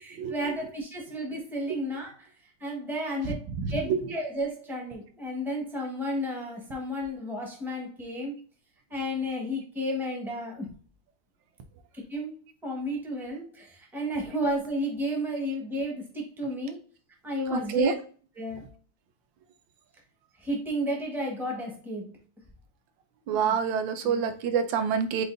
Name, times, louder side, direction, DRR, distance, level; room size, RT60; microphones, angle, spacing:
voice 1, 0.0-2.3 2.6-8.3 8.9-10.7 11.9-12.3 12.6-16.8 17.2-18.0 18.4-18.6 20.4-22.1 23.3-23.6 24.0-24.3, equal, ahead, 0 dB, 1.1 m, -32 dB
voice 2, 3.2-4.0 17.5-17.9 23.3-25.2, right 6 dB, 85° right, 8 dB, 1.4 m, -27 dB
5.2 x 3.9 x 2.5 m, 0.41 s
omnidirectional pair, 2.0 m